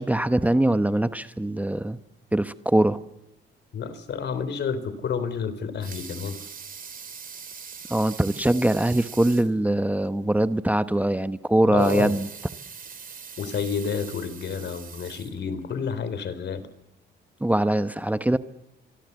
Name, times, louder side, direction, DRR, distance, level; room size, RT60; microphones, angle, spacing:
voice 1, 0.0-2.0 2.3-3.0 7.9-12.3 17.4-18.4, right 1 dB, 5° right, 11 dB, 1.0 m, -22 dB
voice 2, 3.7-6.5 11.7-12.2 13.4-16.7, left 6 dB, 60° left, 14 dB, 3.7 m, -30 dB
Water tap faucet / Sink (filling or washing) / Liquid, 5.6-9.6 10.0-10.1 10.4-10.5 11.6-15.8 16.4-16.5, right 6 dB, 45° right, 3.2 m, -42 dB
26.5 x 23.5 x 8.2 m, 0.94 s
cardioid pair, 90°, 20 cm